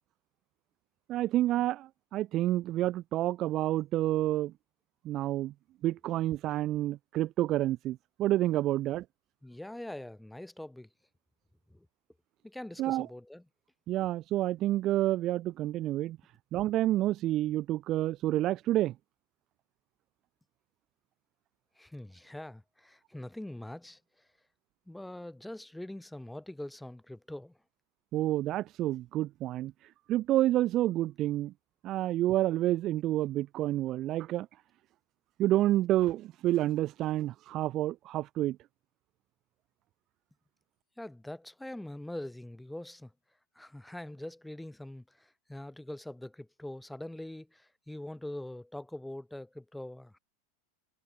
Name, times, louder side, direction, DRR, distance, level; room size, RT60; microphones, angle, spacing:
voice 1, 1.1-4.5 5.0-5.5 5.8-9.0 12.8-13.1 13.9-16.2 16.5-18.9 28.1-29.7 30.1-31.5 31.8-34.5 35.4-38.6, right 14 dB, 35° right, 0.7 m, -29 dB
voice 2, 9.4-10.9 11.7-11.9 12.4-13.4 21.8-24.0 24.9-27.5 41.0-43.1 43.6-50.2, left 1 dB, 5° left, 7.3 m, -43 dB
figure-of-eight pair, 85°, 0 cm